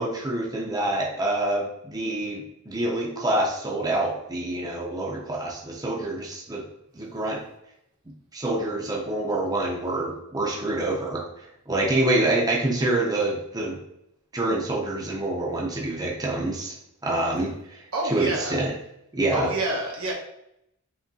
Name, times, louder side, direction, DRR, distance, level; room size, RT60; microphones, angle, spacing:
voice 1, 0.0-6.6 6.9-7.4 8.3-13.8 14.3-16.7 17.0-18.7 19.1-19.5, right 2 dB, 20° right, -3 dB, 0.6 m, -26 dB
voice 2, 17.9-18.5 19.3-20.1, right 2 dB, 85° right, -3 dB, 1.2 m, -27 dB
5.2 x 2.9 x 2.7 m, 0.78 s
head